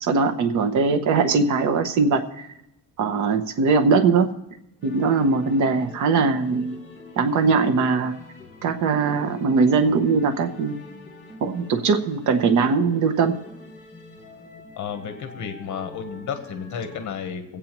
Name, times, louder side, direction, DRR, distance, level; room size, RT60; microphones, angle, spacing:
voice 1, 0.0-2.2 3.0-4.3 4.8-6.7 7.2-8.1 8.6-10.8 11.4-13.4, right 4 dB, 50° right, 6 dB, 0.8 m, -20 dB
sound 1, 4.8-17.1, left 2 dB, 25° left, 2.3 m, -45 dB
voice 2, 14.8-17.6, left 7 dB, 50° left, 7 dB, 0.9 m, -32 dB
25.0 x 8.3 x 3.0 m, 0.89 s
cardioid pair, 165°, 37 cm